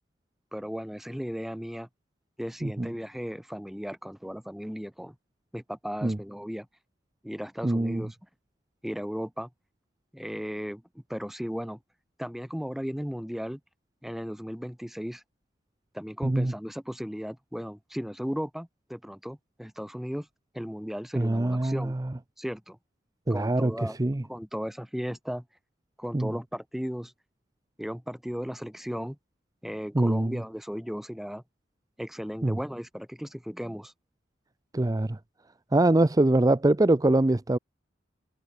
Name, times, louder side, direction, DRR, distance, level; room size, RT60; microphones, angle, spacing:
voice 1, 0.5-1.9 2.4-5.2 5.5-6.7 7.2-8.2 8.8-9.5 10.1-11.8 12.2-13.6 14.0-15.2 15.9-20.3 20.5-22.0 22.4-22.8 23.3-24.0 24.3-25.4 26.0-27.1 27.8-29.2 29.6-31.4 32.0-33.9, equal, ahead, 0.9 m, -36 dB
voice 2, 7.6-8.0 16.2-16.5 21.2-22.0 23.3-23.7 24.0-24.2 26.1-26.3 29.9-30.4 32.4-32.6 34.7-35.2 35.7-37.6, right 2 dB, 20° right, 0.5 m, -23 dB
head